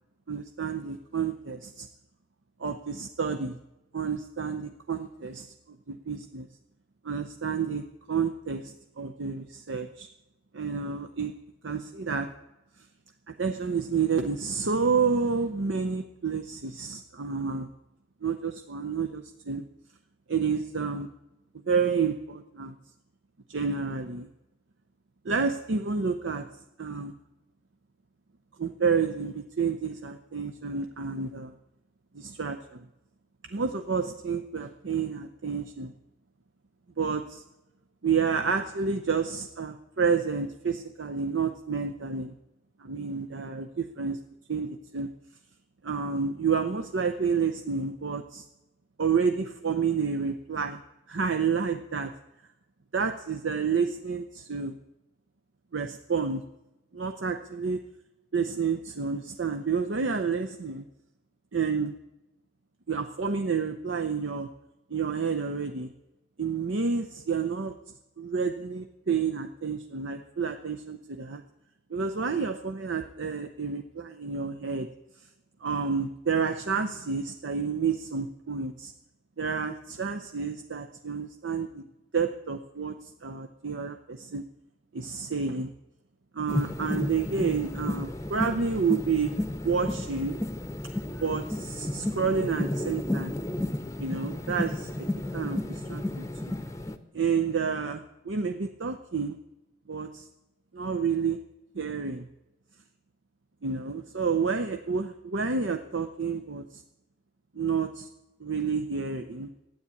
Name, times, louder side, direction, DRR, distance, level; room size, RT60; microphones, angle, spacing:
voice 1, 0.3-1.9 2.6-3.6 3.9-6.5 7.0-10.1 10.5-11.3 11.6-12.3 13.3-17.7 18.2-19.6 20.3-21.1 21.7-22.8 23.5-24.3 25.2-26.5 26.8-27.1 28.6-31.5 32.1-32.9 33.5-35.9 37.0-37.4 38.0-42.3 42.8-44.2 44.5-45.1 45.8-48.4 49.0-50.8 51.1-52.1 52.9-54.8 55.7-56.4 56.9-57.8 58.3-60.8 61.5-61.9 62.9-64.5 64.9-65.9 66.4-67.7 68.2-71.4 71.9-74.9 75.6-78.9 79.4-81.9 82.1-84.5 84.9-85.7 86.3-89.3 89.6-90.4 91.2-93.3 94.0-95.1 95.3-96.5 97.1-99.4 99.9-100.3 100.7-101.4 101.7-102.3 103.6-106.8 107.5-108.1 108.4-109.5, right 5 dB, 70° right, 6 dB, 0.7 m, -29 dB
sound 1, 86.5-96.9, left 1 dB, 15° left, 0.7 m, -32 dB
13.0 x 9.6 x 8.4 m, 0.97 s
head